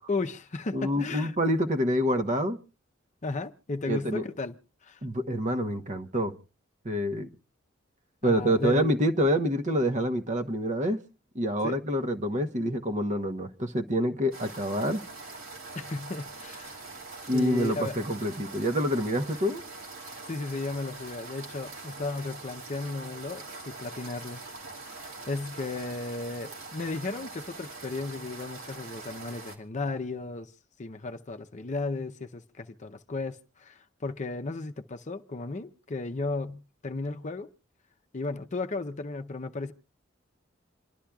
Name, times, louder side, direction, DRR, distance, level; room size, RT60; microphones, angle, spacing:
voice 1, 0.1-1.4 3.2-5.1 8.2-8.9 11.6-11.8 15.7-16.7 17.3-18.0 20.3-24.4 25.3-30.5 30.8-37.5 38.1-39.7, left 3 dB, 35° left, 0.7 m, -34 dB
voice 2, 0.7-2.6 3.9-4.2 5.0-6.3 6.8-7.3 8.2-11.0 11.3-15.0 17.3-19.6, equal, 40° right, 1.1 m, -27 dB
sound 1, 14.3-29.6, right 3 dB, 85° right, 2.8 m, -43 dB
27.5 x 11.5 x 2.4 m
head